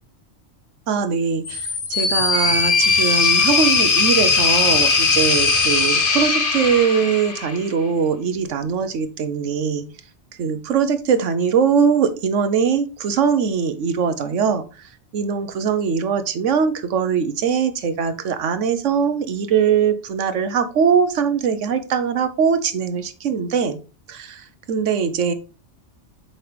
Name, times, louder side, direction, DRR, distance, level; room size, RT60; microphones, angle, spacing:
voice 1, 0.9-9.9 10.4-14.6 15.1-23.8 24.1-25.3, right 6 dB, 80° right, 10 dB, 1.2 m, -21 dB
sound 1, 1.5-7.7, left 4 dB, 50° left, 1.2 m, -19 dB
7.0 x 5.3 x 3.3 m, 0.32 s
omnidirectional pair, 1.2 m